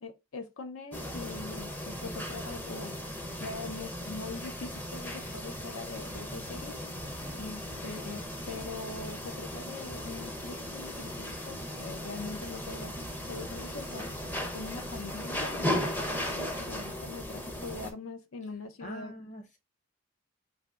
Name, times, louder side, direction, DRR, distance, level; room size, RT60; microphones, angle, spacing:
voice 1, 0.0-3.0 3.4-6.8 7.3-14.1 14.5-19.1, left 3 dB, 85° left, 0.6 m, -42 dB
sound 1, 0.9-17.9, left 1 dB, 10° left, 0.5 m, -37 dB
voice 2, 7.1-7.4 18.8-19.6, equal, 35° left, 1.0 m, -44 dB
3.3 x 2.6 x 2.4 m
head